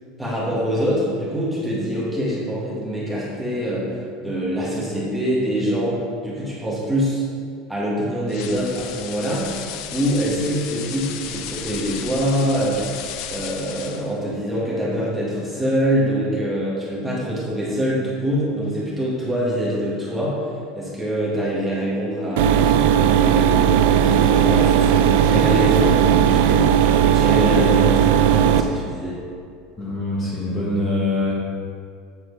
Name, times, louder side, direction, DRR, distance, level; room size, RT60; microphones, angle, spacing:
voice 1, 0.2-6.0 6.2-7.2 7.7-9.6 9.9-12.9 13.3-20.4 20.7-22.5 23.0-26.9 27.1-29.2, equal, 5° right, -8 dB, 1.8 m, -24 dB
sound 1, 8.3-14.2, left 9 dB, 55° left, 0.5 m, -34 dB
sound 2, 22.4-28.6, right 9 dB, 75° right, 0.5 m, -16 dB
voice 2, 29.8-31.3, left 2 dB, 25° left, -6 dB, 1.4 m, -24 dB
9.1 x 4.7 x 4.8 m, 2.3 s
cardioid pair, 160°, 0 cm